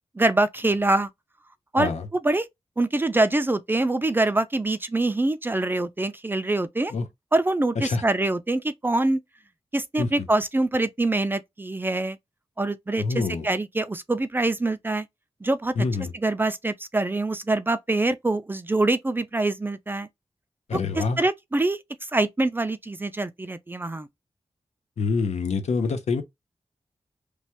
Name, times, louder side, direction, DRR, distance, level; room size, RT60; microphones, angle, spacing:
voice 1, 0.2-1.1 1.7-1.9 2.2-2.5 2.8-6.9 7.3-9.2 9.7-12.2 12.6-15.1 15.4-15.7 16.2-20.1 21.0-21.8 22.1-24.1, right 2 dB, 20° right, 0.3 m, -24 dB
voice 2, 13.0-13.5 15.8-16.1 20.7-21.2 25.0-26.2, left 4 dB, 80° left, 0.6 m, -26 dB
3.1 x 2.2 x 2.8 m
wide cardioid pair, 125°, 11 cm